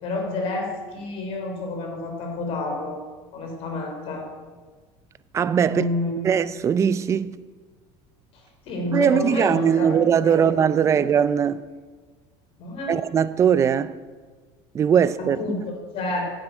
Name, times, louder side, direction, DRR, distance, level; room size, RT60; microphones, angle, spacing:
voice 1, 0.0-3.0 3.3-4.3 5.7-6.3 8.3-10.5 10.9-11.0 12.6-13.0 15.2-16.3, left 2 dB, 50° left, 3.3 m, -29 dB
voice 2, 5.3-5.8 6.2-7.4 8.9-11.6 12.9-13.9 14.7-15.4, right 8 dB, 20° right, 0.4 m, -20 dB
9.9 x 8.0 x 9.1 m
cardioid pair, 160°, 13 cm